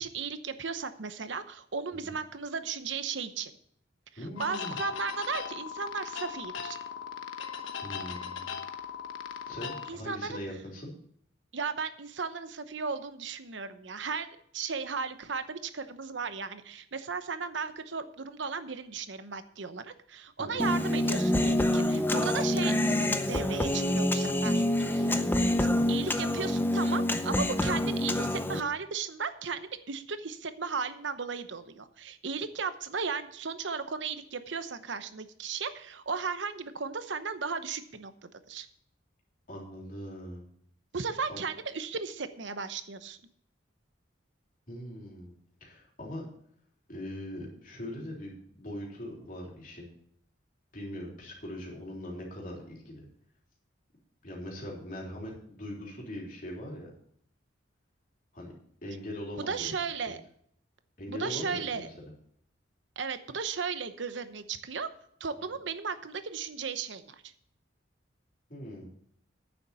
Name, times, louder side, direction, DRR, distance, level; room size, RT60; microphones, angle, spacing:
voice 1, 0.0-3.5 4.1-6.8 9.9-10.4 11.5-22.7 23.3-38.7 40.9-43.2 59.4-60.2 61.1-61.9 63.0-64.9 65.2-67.3, right 5 dB, 70° right, 11 dB, 0.9 m, -35 dB
voice 2, 4.2-4.8 7.8-8.5 9.5-10.9 20.4-20.6 39.5-40.5 41.3-41.4 44.7-45.3 45.6-46.2 46.9-49.9 50.7-53.1 54.2-56.9 58.3-58.5 58.8-60.2 61.0-61.9 65.4-65.5 68.5-68.9, left 1 dB, 45° left, -2 dB, 3.5 m, -41 dB
sound 1, 4.4-9.9, left 7 dB, 85° left, 1.1 m, -38 dB
Human voice, 20.6-28.6, left 1 dB, 10° left, 0.6 m, -27 dB
9.6 x 7.0 x 6.9 m, 0.66 s
head